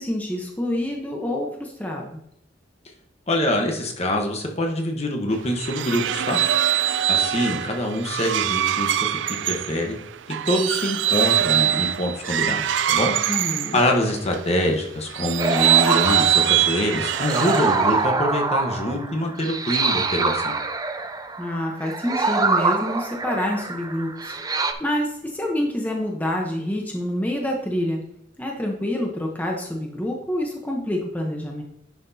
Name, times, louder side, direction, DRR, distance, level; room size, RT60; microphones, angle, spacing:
voice 1, 0.0-2.2 13.2-13.8 21.4-28.0 28.4-31.6, left 1 dB, 10° left, 0 dB, 0.9 m, -27 dB
voice 2, 3.3-6.4 7.1-9.2 9.4-10.0 10.4-20.5, left 1 dB, 35° left, 2 dB, 1.1 m, -25 dB
sound 1, 5.4-14.5 15.1-18.1, right 10 dB, 80° right, 0.4 m, -23 dB
sound 2, 15.4-24.7, right 3 dB, 20° right, 0.5 m, -25 dB
10.5 x 5.8 x 2.8 m, 0.75 s
head